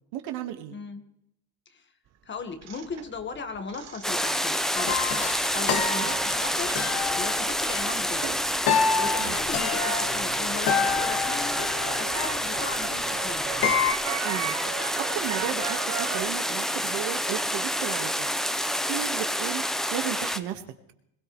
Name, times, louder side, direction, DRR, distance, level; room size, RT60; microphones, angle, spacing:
voice 1, 0.1-0.8 5.9-6.1 9.2-9.4 14.2-14.6 14.8-15.8 16.1-18.3 18.9-19.6 19.9-20.6, right 11 dB, 70° right, 7 dB, 1.8 m, -34 dB
voice 2, 0.7-1.0 1.7-1.8 2.2-5.2 5.5-6.7 7.2-8.4 9.0-11.6 11.9-13.5, left 4 dB, 25° left, 8 dB, 1.7 m, -37 dB
sound 1, 2.6-4.6 4.9-8.6 8.9-16.3, right 12 dB, 40° right, 0.7 m, -37 dB
sound 2, 4.0-20.4, equal, ahead, 0.6 m, -28 dB
sound 3, 4.7-13.9, left 6 dB, 60° left, 2.2 m, -29 dB
21.5 x 16.5 x 3.3 m, 0.78 s
cardioid pair, 140°, 42 cm